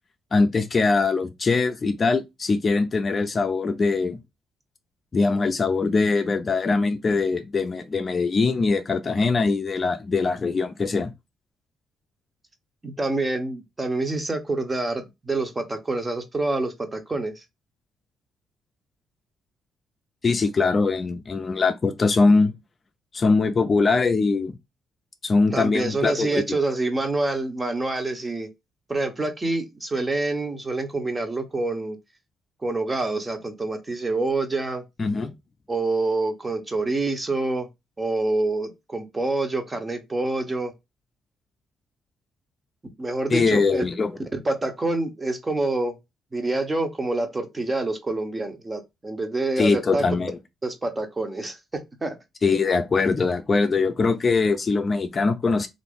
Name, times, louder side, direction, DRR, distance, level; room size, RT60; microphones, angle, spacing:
voice 1, 0.3-4.2 5.1-11.1 20.2-22.5 23.1-24.6 25.2-26.4 35.0-35.3 43.3-44.1 49.6-50.4 52.4-55.7, left 4 dB, 35° left, 0.4 m, -22 dB
voice 2, 12.8-17.4 25.5-28.5 28.9-32.0 32.6-34.8 35.7-37.7 38.0-40.7 43.0-43.8 44.3-46.0 46.3-50.0 50.6-52.1, right 2 dB, 20° right, 0.8 m, -27 dB
2.8 x 2.6 x 3.5 m
cardioid pair, 90°, 0 cm